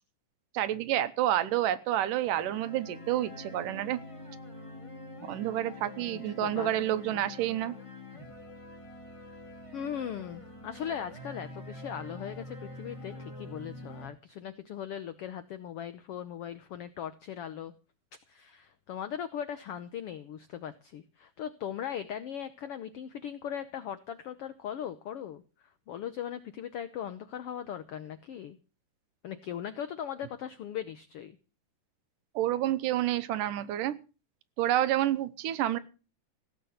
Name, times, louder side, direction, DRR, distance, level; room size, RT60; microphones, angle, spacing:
voice 1, 0.5-4.0 5.2-7.7 32.4-34.0 34.6-35.8, right 13 dB, 85° right, 13 dB, 2.5 m, -29 dB
sound 1, 2.2-14.1, left 2 dB, 10° left, 1.6 m, -46 dB
voice 2, 6.0-6.7 7.1-7.2 9.7-17.7 18.3-25.4 25.9-28.6 29.2-31.3, left 9 dB, 75° left, 12 dB, 1.3 m, -39 dB
16.5 x 7.6 x 7.9 m, 0.34 s
omnidirectional pair, 3.7 m